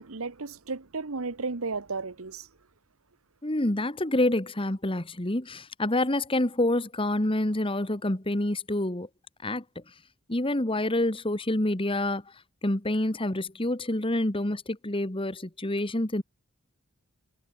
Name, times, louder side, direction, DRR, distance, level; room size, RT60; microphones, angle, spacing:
voice 1, 0.0-2.5, right 4 dB, 70° right, 1.2 m, -34 dB
voice 2, 3.4-9.1 9.4-9.6 10.3-12.2 12.6-16.2, left 1 dB, 25° left, 1.5 m, -27 dB
head